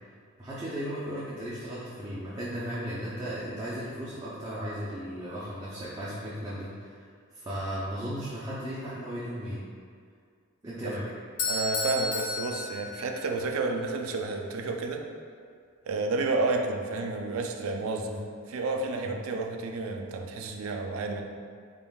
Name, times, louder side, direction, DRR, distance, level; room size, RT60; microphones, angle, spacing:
voice 1, 0.4-7.0 7.3-9.6 10.6-11.0 18.1-18.2 19.0-19.1, equal, 15° right, -9 dB, 0.5 m, -36 dB
Bell / Doorbell, 11.4-13.5, left 2 dB, 60° left, 0.6 m, -32 dB
voice 2, 11.5-15.1 15.9-18.1 18.5-21.2, right 3 dB, 85° right, 4 dB, 0.4 m, -30 dB
4.0 x 3.6 x 2.3 m, 2.1 s
head